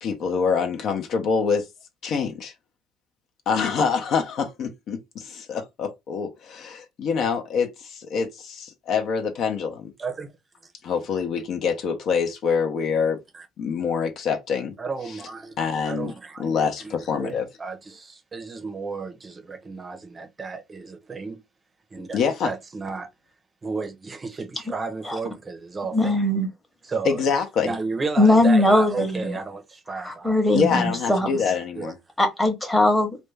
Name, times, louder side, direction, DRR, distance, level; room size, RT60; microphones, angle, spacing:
voice 1, 0.0-1.7 2.0-2.5 3.5-9.9 10.8-13.2 13.6-14.7 15.1-15.2 15.6-16.1 16.4-17.5 22.1-22.5 27.0-27.7 30.5-32.0, left 6 dB, 60° left, 0.6 m, -25 dB
voice 2, 14.8-16.9 17.2-21.4 21.9-22.2 22.4-23.1 23.6-26.0 26.9-27.2 27.6-30.3 31.7-31.9, right 4 dB, 25° right, 0.6 m, -33 dB
voice 3, 25.9-26.5 28.2-29.4 30.0-31.3 32.2-33.2, left 1 dB, 10° left, 0.9 m, -20 dB
2.5 x 2.2 x 3.1 m
cardioid pair, 110°, 0 cm